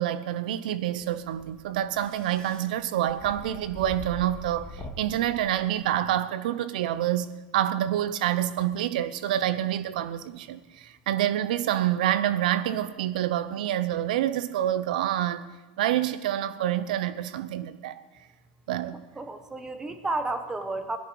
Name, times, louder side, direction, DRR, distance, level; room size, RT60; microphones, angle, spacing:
voice 1, 0.0-15.5 15.8-18.0 18.7-19.0, right 12 dB, 80° right, 0.8 m, -27 dB
sound 1, 1.0-6.1, left 1 dB, 20° left, 2.0 m, -44 dB
voice 2, 19.2-21.0, right 2 dB, 15° right, 1.2 m, -31 dB
18.5 x 10.5 x 4.7 m
supercardioid pair, 120°, 4 cm